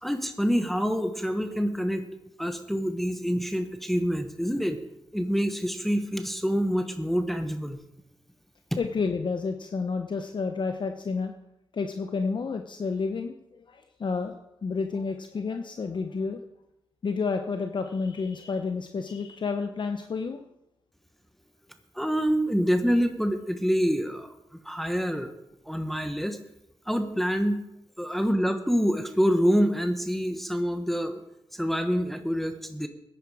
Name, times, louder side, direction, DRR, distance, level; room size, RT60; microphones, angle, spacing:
voice 1, 0.0-2.1 2.4-4.8 5.1-7.8 21.9-24.3 24.6-25.3 25.6-26.4 26.9-27.6 28.0-31.2 31.5-32.9, equal, ahead, 6 dB, 1.0 m, -26 dB
voice 2, 8.8-11.3 11.7-14.3 14.6-16.4 17.0-20.4, left 4 dB, 50° left, 6 dB, 0.8 m, -30 dB
15.5 x 10.0 x 4.9 m, 0.87 s
cardioid pair, 85°, 10 cm